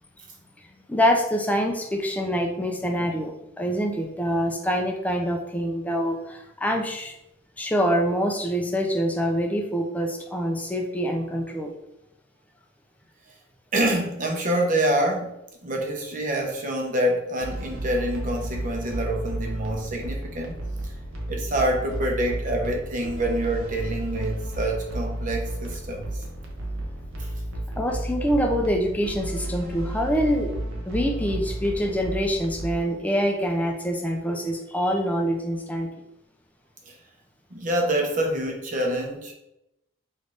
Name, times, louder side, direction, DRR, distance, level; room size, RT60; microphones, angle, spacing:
voice 1, 0.9-7.1 7.6-11.7 27.8-30.5 30.9-35.9, equal, 5° left, 2 dB, 0.5 m, -25 dB
voice 2, 13.7-15.3 15.6-20.6 21.3-26.1 27.2-27.3 37.5-39.3, right 1 dB, 40° right, 1 dB, 0.8 m, -26 dB
sound 1, 17.4-32.7, right 1 dB, 90° right, 0.9 m, -32 dB
3.4 x 3.1 x 3.9 m, 0.86 s
head